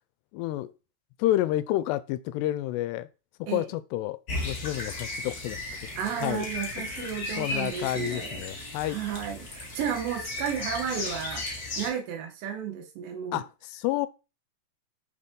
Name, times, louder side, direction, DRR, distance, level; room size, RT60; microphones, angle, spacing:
voice 1, 0.3-0.7 1.2-3.1 3.4-5.6 6.2-6.5 6.8-7.1 7.4-9.0 13.3-14.1, left 14 dB, 85° left, 2.7 m, -30 dB
sound 1, 4.3-11.9, left 2 dB, 45° left, 1.1 m, -35 dB
voice 2, 6.0-8.4 8.8-13.4, right 8 dB, 85° right, 3.4 m, -33 dB
7.1 x 6.4 x 3.7 m
omnidirectional pair, 4.8 m